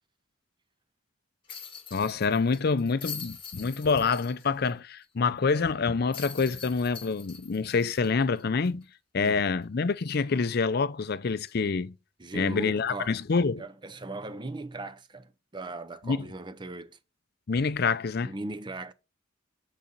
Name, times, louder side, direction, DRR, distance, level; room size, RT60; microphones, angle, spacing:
sound 1, 1.5-4.7 5.0-5.1 6.1-8.8 9.2-9.3 11.5-11.7, left 7 dB, 25° left, 1.7 m, -43 dB
voice 1, 1.9-8.8 9.1-11.9 12.3-13.6 16.1-16.2 17.5-18.3, left 4 dB, 50° left, 0.5 m, -27 dB
voice 2, 9.2-9.5 12.2-13.2 13.6-17.0 18.2-18.9, right 2 dB, 25° right, 0.6 m, -38 dB
8.9 x 4.1 x 6.7 m
head